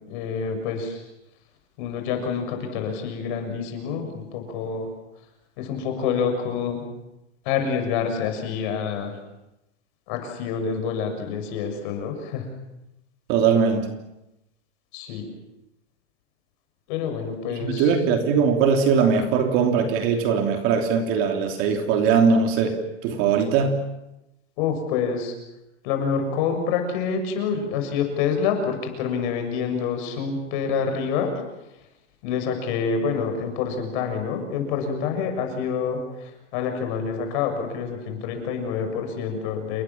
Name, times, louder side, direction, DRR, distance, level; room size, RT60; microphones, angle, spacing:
voice 1, 0.1-1.0 1.8-4.9 5.6-6.8 7.4-9.2 10.1-12.5 14.9-15.3 16.9-17.9 24.6-25.3 25.8-31.3 32.2-39.8, left 6 dB, 40° left, 5 dB, 6.5 m, -27 dB
voice 2, 13.3-13.9 17.5-23.8, right 6 dB, 35° right, 4 dB, 3.1 m, -21 dB
29.0 x 22.5 x 7.2 m, 0.93 s
supercardioid pair, 160°, 37 cm